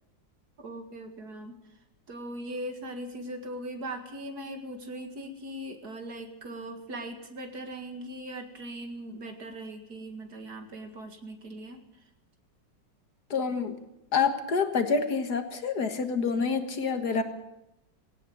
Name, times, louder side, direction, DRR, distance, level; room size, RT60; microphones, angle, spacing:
voice 1, 0.6-1.6 2.1-11.8, right 1 dB, 55° right, 6 dB, 2.6 m, -39 dB
voice 2, 13.3-13.8 14.1-17.2, left 5 dB, 60° left, 8 dB, 2.0 m, -27 dB
19.0 x 17.5 x 7.9 m, 0.89 s
omnidirectional pair, 2.0 m